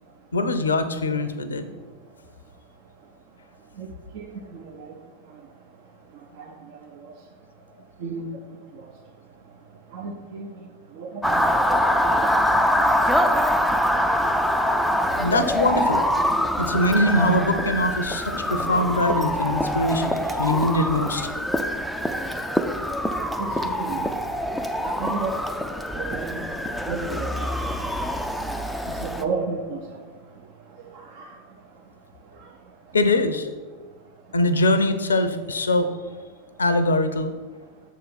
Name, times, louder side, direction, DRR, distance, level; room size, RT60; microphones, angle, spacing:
voice 1, 0.3-1.7 15.2-16.2 16.6-21.3 32.9-33.5 34.3-35.9 36.6-37.3, left 1 dB, 70° left, 10 dB, 0.5 m, -22 dB
voice 2, 9.9-10.5 11.0-11.4 11.7-11.8 12.1-12.3 12.8-12.9 23.4-24.0 24.8-25.4 25.7-26.4 26.7-27.5 29.0-29.8 31.2-31.3, right 4 dB, 50° right, 1 dB, 0.7 m, -32 dB
Motor vehicle (road) / Siren, 11.2-29.2, equal, ahead, 0.4 m, -24 dB
6.8 x 3.7 x 5.9 m, 1.4 s
figure-of-eight pair, 90°, 0 cm